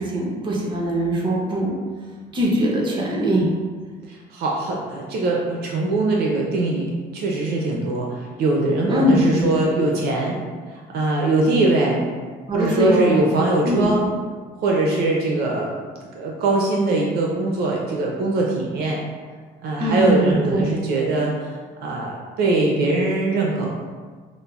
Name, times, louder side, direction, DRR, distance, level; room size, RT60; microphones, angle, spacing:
voice 1, 0.0-1.7 2.3-3.5 8.9-9.5 12.5-13.2 13.6-13.9 19.8-20.6, equal, 30° right, -3 dB, 0.8 m, -21 dB
voice 2, 4.1-10.4 10.7-12.0 12.5-14.0 14.6-15.8 16.1-19.0 19.6-21.5 21.8-23.7, right 2 dB, 70° right, -1 dB, 0.5 m, -22 dB
5.1 x 2.0 x 2.3 m, 1.5 s
cardioid pair, 110°, 17 cm